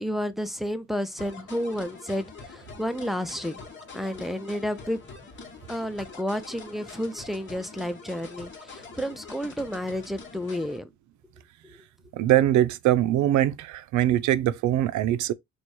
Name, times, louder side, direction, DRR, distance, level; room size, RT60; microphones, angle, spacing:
voice 1, 0.0-3.6 3.9-5.0 5.7-10.9 11.6-11.8, equal, ahead, 0.5 m, -31 dB
sound 1, 1.2-10.8, left 4 dB, 40° left, 1.2 m, -44 dB
voice 2, 12.2-15.3, right 13 dB, 75° right, 0.5 m, -22 dB
3.0 x 2.4 x 4.3 m
cardioid pair, 90°, 30 cm